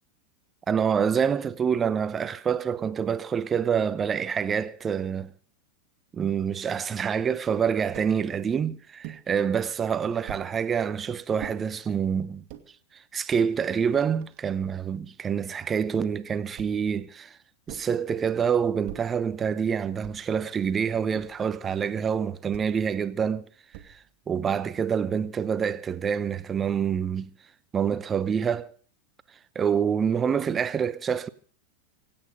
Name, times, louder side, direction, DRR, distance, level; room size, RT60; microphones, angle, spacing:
voice 1, 0.7-5.3 6.1-12.4 13.1-17.4 17.7-23.5 23.8-24.0 24.3-27.3 27.7-28.7 29.5-31.3, right 7 dB, 20° right, 0.8 m, -26 dB
sound 1, 7.9-8.2 9.0-9.3 10.3-10.5 11.4-11.6 12.3-12.7 13.4-13.5 13.7-14.8 16.6-16.9 17.7-18.0 18.9-19.2 20.0-20.4 21.1-21.5 22.5-22.8 23.7-24.2, right 13 dB, 45° right, 1.9 m, -43 dB
25.5 x 8.9 x 5.3 m
figure-of-eight pair, 90°, 0 cm